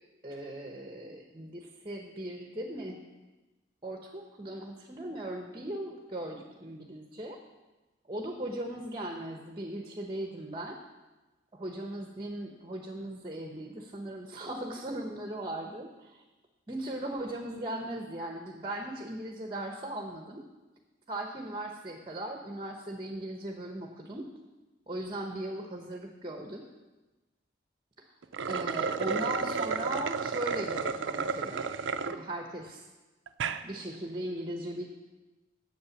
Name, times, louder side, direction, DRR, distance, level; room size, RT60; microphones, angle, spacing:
voice 1, 0.2-3.0 3.8-7.4 8.1-10.8 11.5-16.2 16.7-20.4 21.1-24.3 24.9-26.7 28.5-31.7 32.1-32.8 33.6-34.8, right 1 dB, 25° right, 3 dB, 0.9 m, -38 dB
sound 1, 28.2-32.2 32.7-32.8 33.3-33.6, right 5 dB, 80° right, 0.5 m, -32 dB
8.6 x 7.6 x 7.1 m, 1.1 s
head